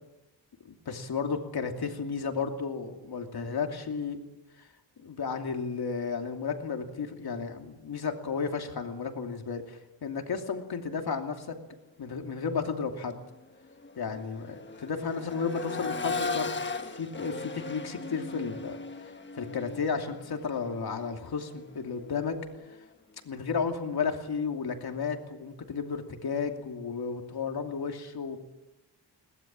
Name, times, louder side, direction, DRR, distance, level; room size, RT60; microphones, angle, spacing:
voice 1, 0.6-4.2 4.6-4.7 5.0-11.6 12.0-13.2 14.0-16.5 16.9-18.8 19.3-22.4 23.2-28.4, left 5 dB, 60° left, 4 dB, 2.8 m, -33 dB
Accelerating revving vroom, 12.4-12.6 13.0-22.9 24.6-24.7, left 4 dB, 25° left, 1.3 m, -38 dB
22.5 x 19.5 x 7.6 m, 1.0 s
wide cardioid pair, 165°, 43 cm